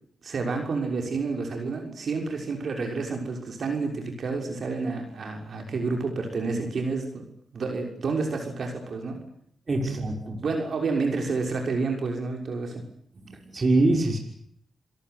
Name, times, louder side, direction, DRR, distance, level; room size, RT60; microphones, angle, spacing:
voice 1, 0.2-7.2 7.5-9.2 10.4-12.8, right 4 dB, 60° right, 3 dB, 6.3 m, -29 dB
voice 2, 9.7-10.4 13.1-14.2, right 2 dB, 45° right, 3 dB, 6.1 m, -24 dB
28.5 x 17.5 x 9.6 m, 0.67 s
cardioid pair, 65°, 0 cm